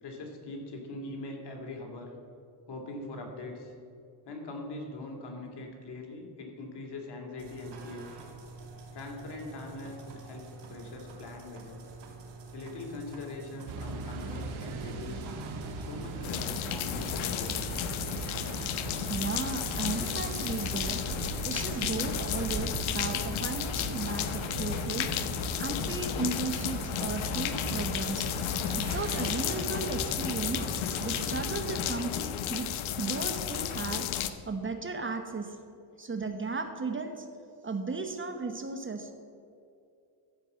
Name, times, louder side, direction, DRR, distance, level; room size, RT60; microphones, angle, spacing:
voice 1, 0.0-2.1 2.7-3.7 4.3-8.1 8.9-11.8 12.5-15.3 15.8-17.7 35.4-35.5, left 2 dB, 55° left, 1 dB, 2.7 m, -42 dB
sound 1, 7.4-16.2, right 3 dB, 60° right, 2.4 m, -47 dB
sound 2, 13.7-31.9, right 3 dB, 85° right, 1.5 m, -38 dB
sound 3, 16.2-34.3, left 10 dB, 75° left, 0.9 m, -33 dB
voice 2, 19.1-21.0 21.4-25.1 25.6-28.3 28.7-30.7 31.0-32.7 33.0-34.1 34.5-35.6 36.0-37.3 37.6-39.1, right 4 dB, 25° right, 7 dB, 1.0 m, -35 dB
14.0 x 5.3 x 7.5 m, 2.5 s
cardioid pair, 90°, 48 cm